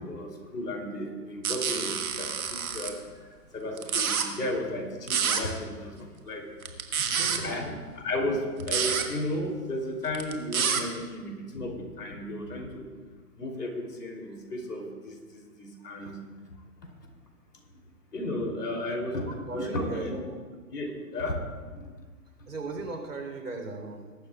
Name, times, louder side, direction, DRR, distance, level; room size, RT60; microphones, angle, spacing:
voice 1, 0.0-3.0 3.5-6.4 7.4-12.9 13.4-16.2 18.1-20.2 20.7-21.4, left 1 dB, 80° left, 1 dB, 3.1 m, -34 dB
sound 1, 1.4-2.9 3.8-4.3 5.1-5.4 6.6-7.4 8.6-9.0 10.1-10.8, right 7 dB, 60° right, 1.6 m, -28 dB
voice 2, 7.0-7.5 19.2-20.4 22.5-24.1, right 3 dB, 80° right, 3 dB, 3.5 m, -37 dB
21.0 x 12.0 x 2.3 m, 1.5 s
figure-of-eight pair, 135°, 47 cm